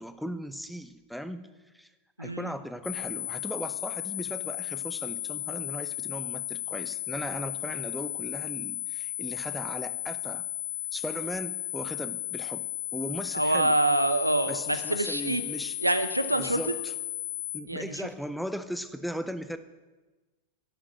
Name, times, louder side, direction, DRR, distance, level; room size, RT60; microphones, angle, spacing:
voice 1, 0.0-1.5 1.7-1.9 2.2-10.4 10.9-12.6 12.9-13.7 14.5-15.8 16.4-16.9 17.5-19.6, equal, ahead, 12 dB, 0.5 m, -37 dB
voice 2, 2.2-2.5 13.3-15.4 15.8-16.6 17.7-18.1, right 1 dB, 85° right, 10 dB, 0.7 m, -26 dB
sound 1, 2.8-17.6, left 13 dB, 40° left, 1.0 m, -35 dB
11.0 x 5.9 x 7.3 m, 1.2 s
figure-of-eight pair, 90°, 0 cm